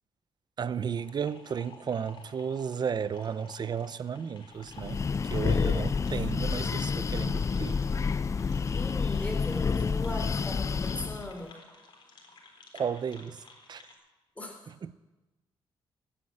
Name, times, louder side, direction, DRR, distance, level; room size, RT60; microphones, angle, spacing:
sound 1, 0.6-13.9, left 4 dB, 50° left, 3.9 m, -54 dB
voice 1, 0.6-7.8 12.7-13.4 13.7-13.8 14.7-14.9, right 7 dB, 45° right, 0.7 m, -34 dB
Breathing, 4.7-11.3, left 5 dB, 30° left, 0.4 m, -29 dB
voice 2, 5.4-6.1 8.7-11.5 14.4-14.6, left 1 dB, 15° left, 3.6 m, -39 dB
15.0 x 10.0 x 8.7 m
cardioid pair, 105°, 10 cm